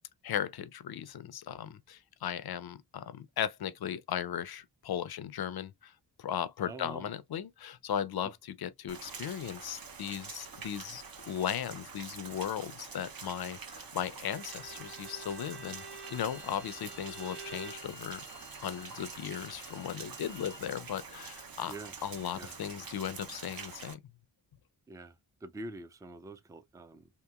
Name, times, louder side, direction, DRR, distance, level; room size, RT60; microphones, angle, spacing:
voice 1, 0.2-5.9 6.2-18.2 18.6-21.7 22.0-24.0, left 9 dB, 60° left, 0.5 m, -37 dB
voice 2, 6.6-7.1 8.2-8.3 21.7-22.6 24.9-27.1, right 2 dB, 10° right, 0.4 m, -46 dB
Rain, 8.9-23.9, right 5 dB, 50° right, 0.8 m, -46 dB
Bowed string instrument, 14.2-17.9, right 4 dB, 25° right, 1.2 m, -49 dB
Bowed string instrument 2, 15.9-20.6, left 1 dB, 75° right, 1.5 m, -54 dB
2.8 x 2.7 x 2.3 m
cardioid pair, 50°, 44 cm